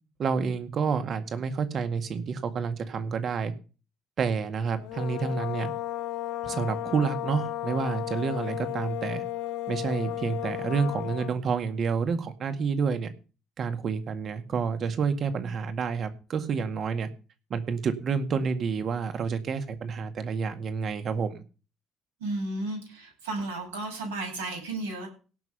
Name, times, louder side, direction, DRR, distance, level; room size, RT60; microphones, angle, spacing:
voice 1, 0.2-3.5 4.2-5.7 6.4-9.2 9.7-13.1 13.6-17.1 17.5-21.4, right 5 dB, 50° right, 9 dB, 2.0 m, -29 dB
sound 1, 4.8-11.4, left 15 dB, 70° left, 1.2 m, -34 dB
voice 2, 22.2-25.1, right 2 dB, 85° right, 1 dB, 7.4 m, -33 dB
17.5 x 6.2 x 5.6 m, 0.35 s
hypercardioid pair, 55°, 0 cm